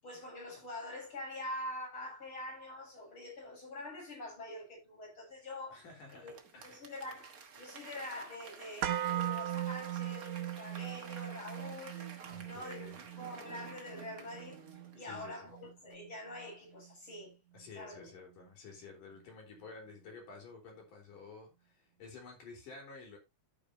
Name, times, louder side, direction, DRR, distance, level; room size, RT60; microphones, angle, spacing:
voice 1, 0.0-12.1 12.4-14.6 14.9-17.4 17.7-18.1, left 1 dB, 35° left, 8.1 m, -45 dB
voice 2, 5.7-6.8 12.3-13.0 15.0-15.5 17.5-23.2, left 4 dB, 75° left, 5.6 m, -51 dB
Applause / Crowd, 6.1-15.5 15.9-16.0, right 5 dB, 90° right, 0.7 m, -52 dB
sound 1, 8.8-16.9 17.2-17.3, right 12 dB, 70° right, 2.0 m, -40 dB
14.0 x 6.5 x 2.9 m
omnidirectional pair, 3.8 m